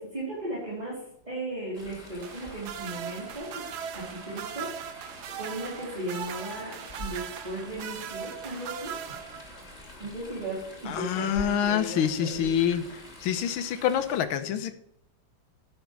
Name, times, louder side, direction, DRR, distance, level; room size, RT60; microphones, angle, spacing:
voice 1, 0.0-3.7 3.9-4.9 5.2-9.2 10.0-12.5, right 1 dB, 20° right, -8 dB, 3.8 m, -36 dB
Chatter / Stream, 1.7-14.2, left 1 dB, 15° left, 2.7 m, -46 dB
sound 1, 2.2-9.8 11.2-11.3, right 9 dB, 65° right, 1.0 m, -39 dB
voice 2, 10.9-14.7, left 9 dB, 85° left, 10 dB, 1.7 m, -27 dB
11.0 x 6.4 x 4.6 m, 0.76 s
omnidirectional pair, 2.3 m